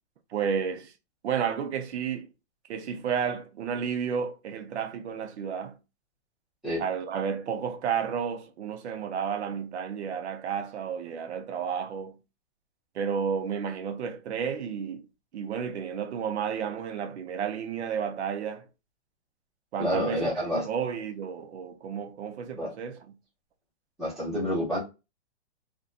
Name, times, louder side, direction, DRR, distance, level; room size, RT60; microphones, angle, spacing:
voice 1, 0.3-0.9 1.2-2.3 2.7-5.8 6.8-12.2 13.0-15.1 15.3-18.7 19.7-23.2, right 7 dB, 80° right, 0.6 m, -32 dB
voice 2, 19.8-20.7 22.6-22.7 24.0-24.8, equal, ahead, 0.6 m, -28 dB
2.5 x 2.2 x 2.3 m
hypercardioid pair, 170°, 33 cm